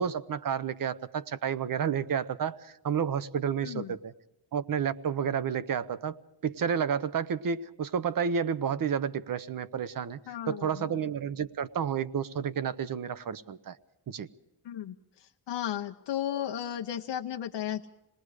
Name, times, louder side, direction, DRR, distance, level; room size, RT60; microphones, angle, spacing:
voice 1, 0.0-4.1 4.5-10.2 10.5-13.8 14.1-14.3, right 7 dB, 50° right, 15 dB, 0.8 m, -31 dB
voice 2, 3.6-3.9 10.3-10.9 14.6-14.9 15.5-17.9, left 10 dB, 90° left, 3 dB, 0.9 m, -34 dB
27.5 x 19.5 x 4.9 m, 0.88 s
wide cardioid pair, 175°, 42 cm